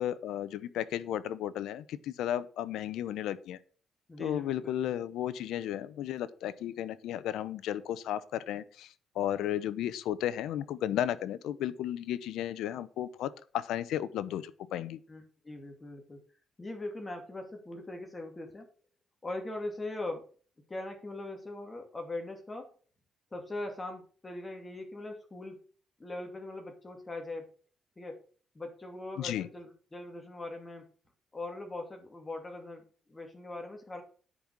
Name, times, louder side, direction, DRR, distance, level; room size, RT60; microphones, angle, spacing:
voice 1, 0.0-3.6 4.2-15.0 29.2-29.5, left 11 dB, 85° left, 16 dB, 0.7 m, -34 dB
voice 2, 4.1-4.5 15.1-16.2 16.6-18.7 19.2-20.3 20.7-22.7 23.3-25.6 26.0-27.5 28.0-28.2 28.5-30.9 31.3-34.0, left 2 dB, 25° left, 4 dB, 2.4 m, -41 dB
9.9 x 5.4 x 6.1 m, 0.42 s
cardioid pair, 90°, 0 cm